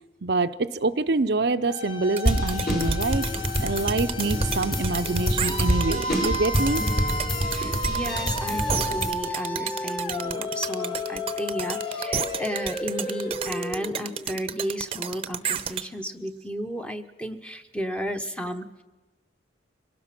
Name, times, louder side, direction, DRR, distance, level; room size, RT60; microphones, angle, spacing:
voice 1, 0.2-3.3 3.6-6.8, right 3 dB, 55° right, 9 dB, 0.6 m, -26 dB
sound 1, 1.6-14.5, left 1 dB, 25° left, 1.8 m, -33 dB
sound 2, 2.2-15.8, right 8 dB, 30° right, 0.8 m, -31 dB
sound 3, 2.3-9.1, equal, 50° left, 5.4 m, -27 dB
voice 2, 7.5-18.8, equal, 5° left, 7 dB, 1.0 m, -33 dB
25.0 x 18.0 x 6.0 m, 1.2 s
head